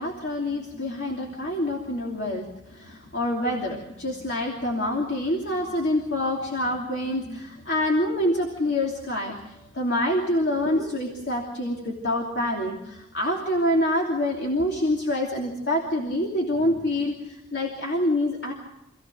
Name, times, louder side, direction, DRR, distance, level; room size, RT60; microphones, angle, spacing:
voice 1, 0.0-18.5, left 1 dB, 65° left, -1 dB, 3.0 m, -26 dB
27.0 x 16.0 x 6.4 m, 0.90 s
head